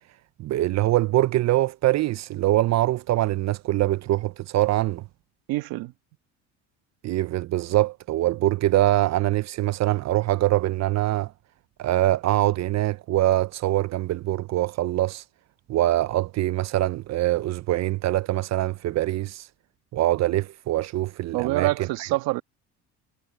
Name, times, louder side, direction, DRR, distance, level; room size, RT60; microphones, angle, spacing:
voice 1, 0.4-5.0 7.0-11.3 11.8-15.2 15.7-19.5 19.9-22.1, right 15 dB, 50° right, 0.5 m, -23 dB
voice 2, 5.5-5.9 21.3-22.4, right 18 dB, 75° right, 1.6 m, -26 dB
cardioid pair, 105°, 36 cm